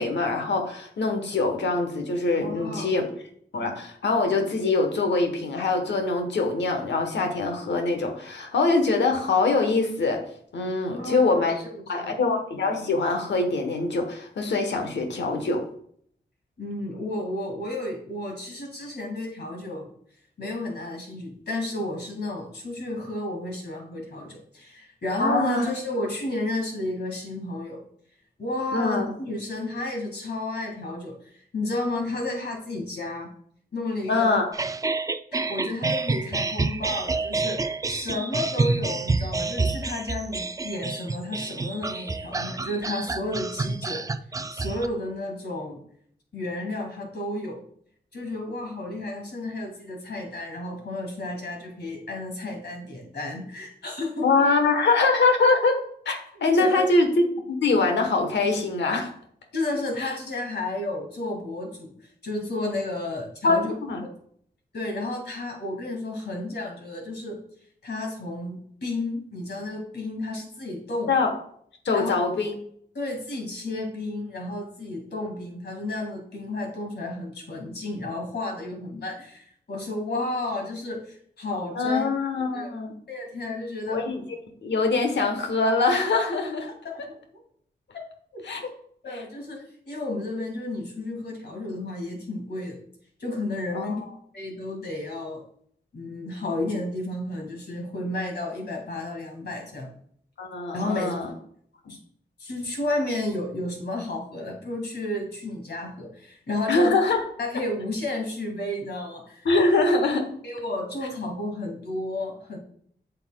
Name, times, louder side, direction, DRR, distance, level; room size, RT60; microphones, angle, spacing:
voice 1, 0.0-3.1 3.5-10.2 10.5-11.5 11.9-15.7 25.2-25.7 28.7-29.1 34.1-34.5 54.2-55.8 56.0-59.1 60.0-60.1 63.4-64.0 71.1-71.3 71.8-72.5 81.7-82.9 83.9-84.2 84.6-86.7 88.5-88.7 93.7-94.0 100.4-101.3 101.9-102.0 106.7-107.2 109.4-110.2, left 3 dB, 85° left, 4 dB, 1.1 m, -23 dB
voice 2, 2.4-3.0 10.9-11.4 11.6-12.2 16.6-19.9 20.4-27.8 28.4-33.3 33.7-34.4 35.3-44.1 44.5-45.8 46.3-47.6 48.1-54.3 56.5-56.9 59.5-63.7 64.7-67.4 67.8-71.1 71.9-72.1 72.9-82.0 82.5-82.7 83.1-84.0 86.8-87.0 88.3-88.4 89.0-92.8 93.2-94.0 94.3-95.5 95.9-99.9 100.7-101.2 101.9-102.0 102.4-106.9 107.4-109.5 110.4-112.6, left 2 dB, 70° left, 1 dB, 2.0 m, -32 dB
sound 1, 34.5-44.9, right 3 dB, 20° right, 0.3 m, -28 dB
7.9 x 5.6 x 2.2 m, 0.63 s
cardioid pair, 60°, 18 cm